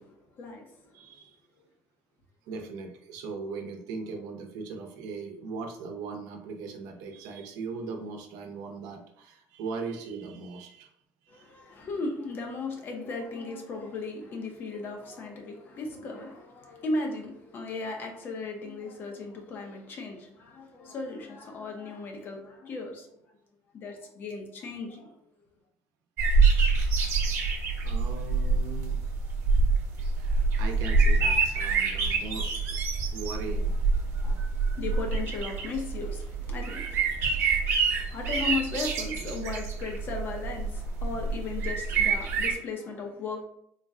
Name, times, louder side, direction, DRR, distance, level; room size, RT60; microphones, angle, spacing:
voice 1, 0.0-0.9 11.3-23.2 23.7-25.1 34.2-43.4, left 3 dB, 35° left, 0.7 m, -36 dB
voice 2, 0.9-1.4 2.4-10.9 11.2-11.5 27.8-29.0 30.1-33.7 34.1-34.4 37.1-37.4 37.8-37.9, right 4 dB, 85° right, 0.7 m, -39 dB
sound 1, 26.2-42.5, right 4 dB, 50° right, 0.9 m, -26 dB
4.0 x 2.2 x 3.5 m
cardioid pair, 170°, 6 cm